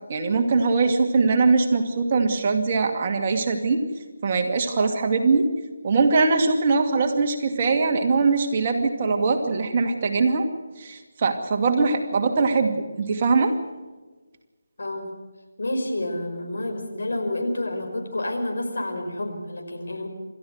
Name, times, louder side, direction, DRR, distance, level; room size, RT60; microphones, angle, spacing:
voice 1, 0.1-3.8 4.2-5.5 5.8-10.5 10.8-13.5, right 4 dB, 35° right, 3 dB, 2.4 m, -21 dB
voice 2, 14.8-15.1 15.6-20.1, left 1 dB, 65° left, 3 dB, 5.5 m, -29 dB
29.0 x 14.0 x 8.0 m, 1.3 s
figure-of-eight pair, 160°, 0 cm